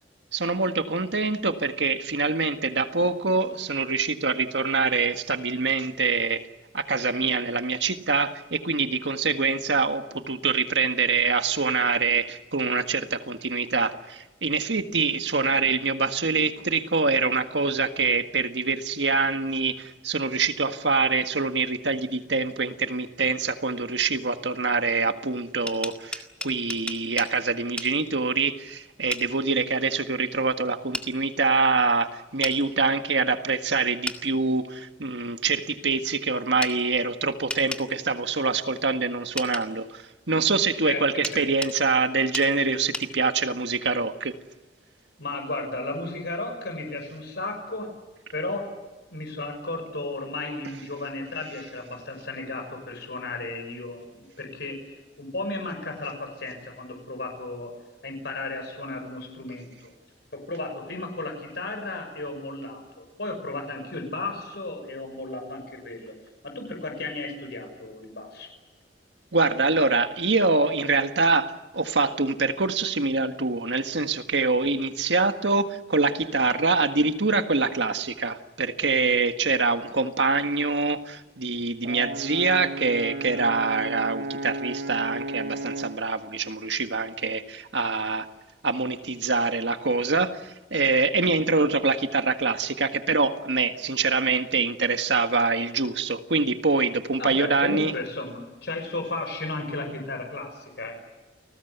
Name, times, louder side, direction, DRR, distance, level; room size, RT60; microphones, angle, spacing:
voice 1, 0.3-6.4 6.7-44.4 69.3-88.3 88.6-97.9, right 4 dB, 75° right, 7 dB, 1.7 m, -25 dB
sound 1, 25.5-27.3 27.8-27.9 29.1-29.3 30.9-31.1 32.4-32.6 34.1-34.2 36.6-36.8 37.5-37.9 39.4-39.7 41.2-41.8 42.3-42.5 42.9-43.1, left 1 dB, 5° left, 2.0 m, -33 dB
voice 2, 45.2-47.9 48.3-48.7 49.1-54.8 55.2-57.7 58.0-59.9 60.3-66.1 66.4-68.5 97.2-101.0, left 2 dB, 65° left, 4 dB, 6.0 m, -34 dB
Brass instrument, 81.8-86.1, right 2 dB, 55° right, 1.2 m, -34 dB
30.0 x 20.0 x 8.2 m, 1.1 s
head